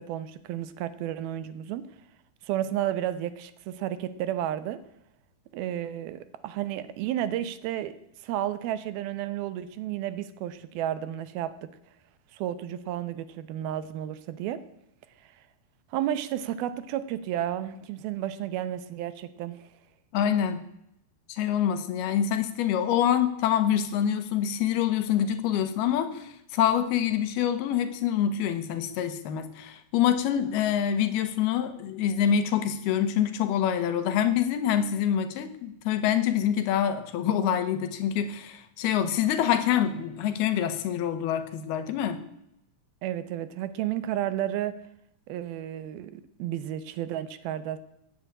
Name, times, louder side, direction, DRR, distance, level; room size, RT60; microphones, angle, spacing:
voice 1, 0.0-1.8 2.4-4.8 5.5-7.9 8.2-11.7 12.3-14.6 15.2-15.3 15.9-19.6 43.0-44.8 45.3-47.8, right 12 dB, 75° right, 13 dB, 2.6 m, -32 dB
voice 2, 20.1-20.6 21.3-42.2, left 9 dB, 80° left, 10 dB, 3.2 m, -26 dB
15.5 x 8.8 x 8.7 m, 0.80 s
omnidirectional pair, 4.5 m